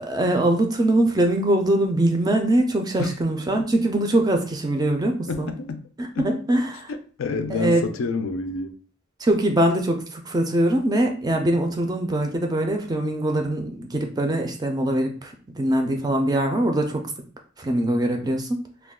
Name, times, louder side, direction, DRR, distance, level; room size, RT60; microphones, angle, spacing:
voice 1, 0.0-5.5 6.2-6.9 7.5-7.8 9.2-15.3 15.6-17.0 17.6-18.6, right 1 dB, 20° right, 0.4 m, -22 dB
voice 2, 5.3-5.9 6.2-6.3 6.9-8.8, left 4 dB, 75° left, 0.4 m, -29 dB
2.3 x 2.2 x 3.5 m
head